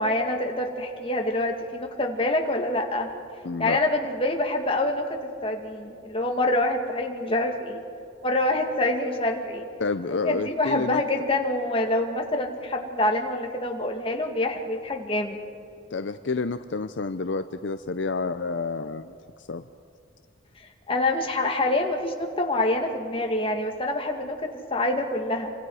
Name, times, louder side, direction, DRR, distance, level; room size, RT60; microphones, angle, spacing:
voice 1, 0.0-3.1 3.6-7.8 8.2-9.7 10.2-15.4 20.9-25.5, left 2 dB, 30° left, 2 dB, 2.1 m, -26 dB
voice 2, 3.4-3.8 9.8-11.0 15.9-19.7, left 4 dB, 65° left, 10 dB, 0.6 m, -29 dB
27.5 x 25.0 x 4.9 m, 2.5 s
head